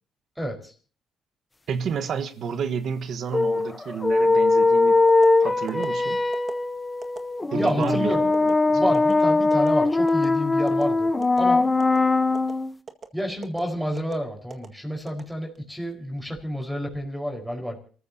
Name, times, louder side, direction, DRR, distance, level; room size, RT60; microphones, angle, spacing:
voice 1, 0.4-0.7 7.5-8.3 8.7-11.1 11.4-11.7 13.1-17.8, equal, ahead, 4.6 m, -29 dB
voice 2, 1.7-5.0 5.4-6.2 7.5-8.4 8.7-8.9, right 7 dB, 65° right, 1.3 m, -30 dB
sound 1, 3.3-12.7, left 3 dB, 20° left, 0.9 m, -21 dB
sound 2, 5.1-5.3 5.7-5.9 6.3-6.6 7.0-7.2 7.7-7.9 8.3-8.5 8.9-9.1 9.5-9.7 10.1-10.3 10.7-10.8 11.2-11.5 11.8-12.0 12.3-12.5 12.9-13.1 13.4-13.6 14.0-14.2 14.5-14.7 15.1-15.7 16.1-16.4, right 5 dB, 45° right, 1.7 m, -38 dB
28.5 x 14.0 x 2.8 m
cardioid pair, 90°, 0 cm